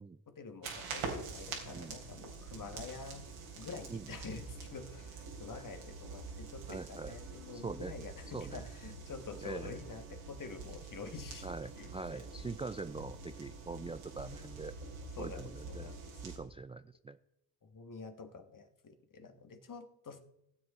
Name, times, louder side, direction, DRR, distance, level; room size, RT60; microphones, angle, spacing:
voice 1, 0.3-3.2 3.5-12.2 15.2-16.0 16.3-16.4 17.6-20.2, left 4 dB, 45° left, 8 dB, 1.6 m, -47 dB
sound 1, 0.6-16.4, right 4 dB, 90° right, 3.4 m, -46 dB
voice 2, 6.7-7.1 7.5-7.9 8.3-8.6 9.4-9.8 11.4-14.7 15.2-15.9 16.2-17.2, right 4 dB, 15° right, 12 dB, 0.3 m, -43 dB
16.5 x 7.7 x 4.1 m, 0.78 s
cardioid pair, 65°, 44 cm